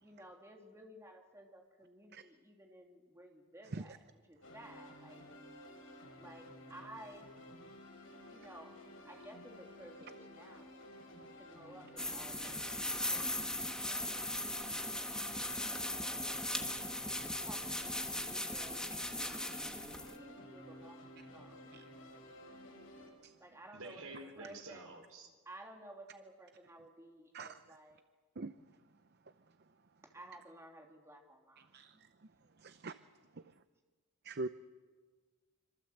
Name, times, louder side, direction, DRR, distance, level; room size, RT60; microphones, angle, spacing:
voice 1, 0.0-5.2 6.2-7.3 8.3-8.7 9.0-10.8 11.4-13.3 13.8-14.2 15.9-16.6 17.4-19.8 20.1-21.7 23.4-24.8 25.4-28.0 30.1-32.0, right 1 dB, 10° right, 1 dB, 2.7 m, -55 dB
voice 2, 2.1-2.2 3.7-3.8 27.3-27.5 28.4-28.5 31.7-31.9 32.6-32.9 34.3-34.5, right 2 dB, 50° right, 11 dB, 0.7 m, -40 dB
sound 1, 4.4-23.1, equal, 60° left, 7.2 m, -54 dB
sound 2, 12.0-20.2, left 1 dB, 5° left, 1.4 m, -38 dB
voice 3, 23.7-25.3, right 2 dB, 75° right, 4 dB, 5.1 m, -49 dB
26.5 x 25.5 x 8.0 m, 1.4 s
head